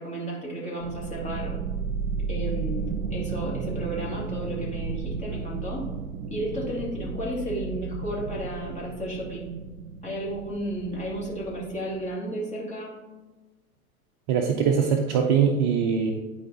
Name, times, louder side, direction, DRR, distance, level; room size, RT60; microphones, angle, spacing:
voice 1, 0.0-1.6 2.3-5.9 6.3-9.5 10.0-12.9, right 1 dB, 15° left, -5 dB, 2.3 m, -33 dB
sound 1, 0.8-12.1, right 5 dB, 80° right, 0.7 m, -34 dB
voice 2, 14.3-16.1, right 7 dB, 35° right, 3 dB, 0.5 m, -22 dB
10.0 x 4.6 x 2.7 m, 1.2 s
figure-of-eight pair, 100°, 44 cm